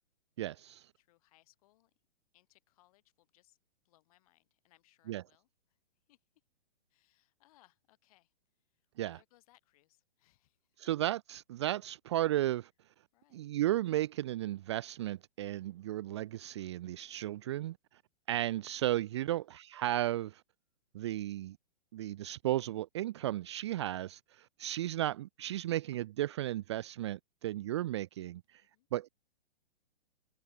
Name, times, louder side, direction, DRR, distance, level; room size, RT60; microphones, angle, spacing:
voice 1, 0.4-0.9 5.1-5.2 9.0-9.2 10.8-12.7 13.3-17.8 18.3-20.4 20.9-21.6 21.9-28.6 28.9-29.1, right 14 dB, 30° right, 0.6 m, -34 dB
voice 2, 1.0-1.9 2.3-3.6 3.8-5.8 6.1-6.2 6.9-8.3 8.7-10.8 13.1-13.6 19.2-19.4 24.6-25.0 28.6-28.9, left 17 dB, 35° left, 7.8 m, -70 dB
hypercardioid pair, 165°, 31 cm